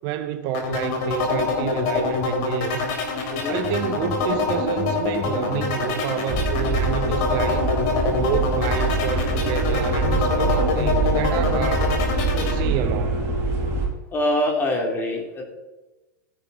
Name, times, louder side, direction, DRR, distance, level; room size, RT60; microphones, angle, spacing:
voice 1, 0.0-2.9 3.4-7.7 8.2-11.9 12.3-13.2, right 9 dB, 45° right, 0.9 m, -29 dB
sound 1, 0.5-12.6, left 4 dB, 50° left, 3.3 m, -25 dB
sound 2, 6.3-13.9, right 2 dB, 30° right, 4.7 m, -24 dB
voice 2, 14.1-15.4, left 1 dB, 20° left, 3.0 m, -24 dB
14.5 x 9.7 x 4.1 m
hypercardioid pair, 130°, 9 cm